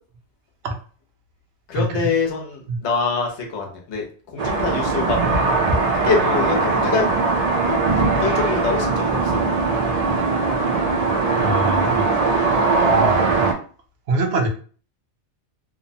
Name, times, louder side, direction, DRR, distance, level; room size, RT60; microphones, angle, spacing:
voice 1, 1.7-5.2 5.9-7.1 7.7-7.8 8.2-9.5, left 4 dB, 80° left, 1 dB, 1.0 m, -24 dB
sound 1, 4.4-13.5, right 3 dB, 55° right, 0.4 m, -20 dB
voice 2, 11.3-12.1 12.8-13.5 14.1-14.5, right 2 dB, 70° right, 3 dB, 0.8 m, -24 dB
2.9 x 2.0 x 2.6 m, 0.41 s
omnidirectional pair, 1.1 m